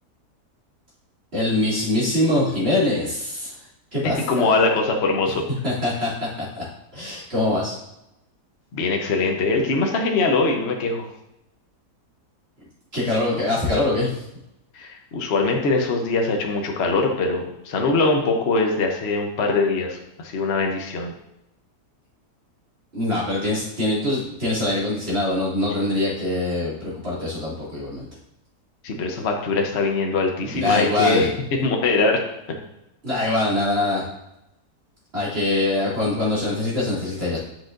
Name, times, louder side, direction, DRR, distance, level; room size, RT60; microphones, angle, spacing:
voice 1, 1.3-3.6 3.9-4.5 5.6-6.3 6.5-6.6 6.9-7.8 12.9-14.2 22.9-28.1 30.5-31.3 33.0-34.0 35.1-37.4, left 2 dB, 35° right, -8 dB, 2.7 m, -23 dB
voice 2, 4.3-5.4 8.7-11.1 14.7-21.1 28.8-31.3 31.6-32.2, left 3 dB, 50° left, 1 dB, 1.0 m, -22 dB
8.4 x 6.2 x 2.6 m, 0.86 s
omnidirectional pair, 1.8 m